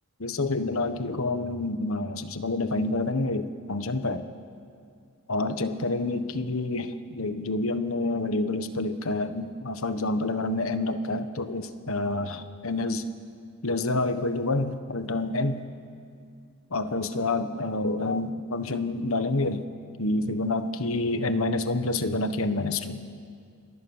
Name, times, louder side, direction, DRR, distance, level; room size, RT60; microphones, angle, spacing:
voice 1, 0.2-4.2 5.3-13.1 13.6-15.6 16.7-19.7 20.0-23.0, left 2 dB, 65° left, 10 dB, 1.3 m, -28 dB
29.0 x 25.5 x 7.2 m, 2.3 s
head